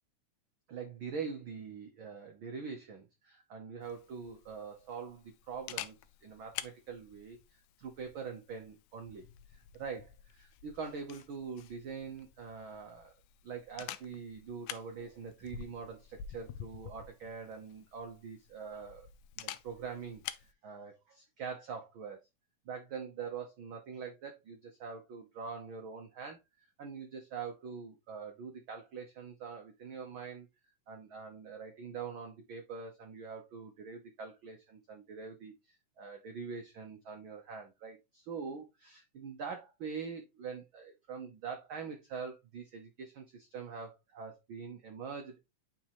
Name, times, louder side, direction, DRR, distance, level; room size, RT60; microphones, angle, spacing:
voice 1, 0.7-7.4 7.8-13.1 13.4-19.1 19.4-22.2 22.6-30.5 30.9-45.4, right 5 dB, 70° right, 1.2 m, -44 dB
Camera, 3.8-20.5, left 11 dB, 85° left, 2.1 m, -49 dB
10.0 x 3.6 x 3.0 m
omnidirectional pair, 3.5 m